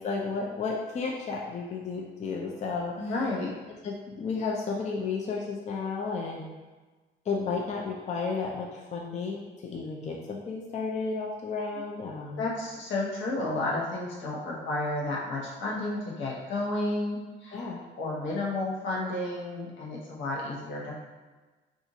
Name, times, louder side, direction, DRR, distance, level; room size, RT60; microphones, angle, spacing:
voice 1, 0.0-3.1 3.8-6.4 7.3-12.4 17.5-17.8, left 4 dB, 35° left, -2 dB, 0.5 m, -33 dB
voice 2, 3.0-3.5 11.7-11.8 12.4-17.7 18.0-20.9, left 2 dB, 75° left, -3 dB, 0.9 m, -31 dB
2.5 x 2.5 x 3.9 m, 1.3 s
cardioid pair, 90°, 20 cm